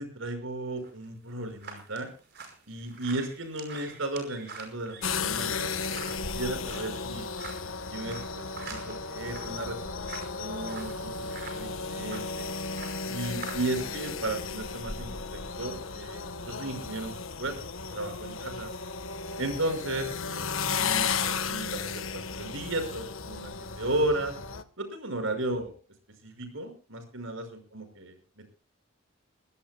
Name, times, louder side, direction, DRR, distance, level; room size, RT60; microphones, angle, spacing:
voice 1, 0.0-2.1 2.7-7.3 7.9-12.5 13.1-17.5 17.9-18.7 19.4-20.5 20.8-24.3 24.8-25.8 26.2-28.2, right 2 dB, 80° right, 7 dB, 5.6 m, -35 dB
sound 1, 0.8-13.9, right 4 dB, 50° right, 5.5 m, -47 dB
sound 2, 5.0-24.6, left 5 dB, 85° left, 1.4 m, -34 dB
24.0 x 17.0 x 2.3 m, 0.35 s
head